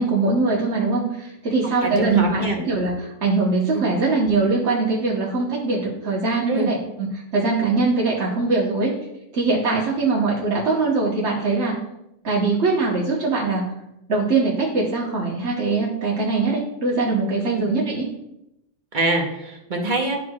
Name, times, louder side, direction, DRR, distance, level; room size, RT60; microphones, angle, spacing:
voice 1, 0.0-8.9 9.3-11.7 12.2-13.6 14.1-18.1, right 3 dB, 60° right, -5 dB, 1.6 m, -22 dB
voice 2, 1.8-2.6 3.7-3.9 6.5-6.7 17.5-17.7 18.9-20.2, right 2 dB, 40° right, 1 dB, 1.2 m, -24 dB
12.0 x 4.6 x 2.4 m, 0.85 s
omnidirectional pair, 1.4 m